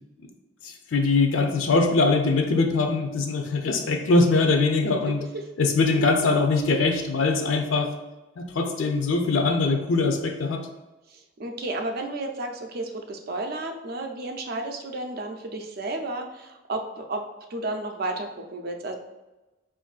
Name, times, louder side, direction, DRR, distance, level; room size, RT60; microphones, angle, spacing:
voice 1, 0.6-5.2 5.6-7.9 8.4-10.6, left 3 dB, 75° left, 4 dB, 0.5 m, -22 dB
voice 2, 11.1-17.2 17.5-18.9, right 2 dB, 50° right, 4 dB, 0.4 m, -32 dB
5.1 x 2.5 x 2.4 m, 1.1 s
head